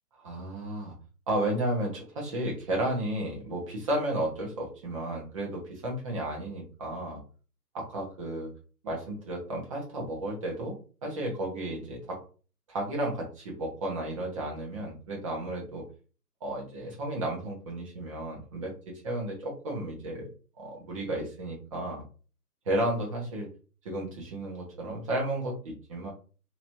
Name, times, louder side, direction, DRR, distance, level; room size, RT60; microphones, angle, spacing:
voice 1, 0.1-0.9 1.3-7.2 7.7-8.5 8.8-10.8 11.0-12.2 12.7-15.8 16.4-20.3 20.6-22.0 22.7-23.5 23.8-26.1, right 1 dB, 20° right, -1 dB, 0.9 m, -33 dB
3.3 x 3.0 x 3.0 m, 0.37 s
hypercardioid pair, 155°, 48 cm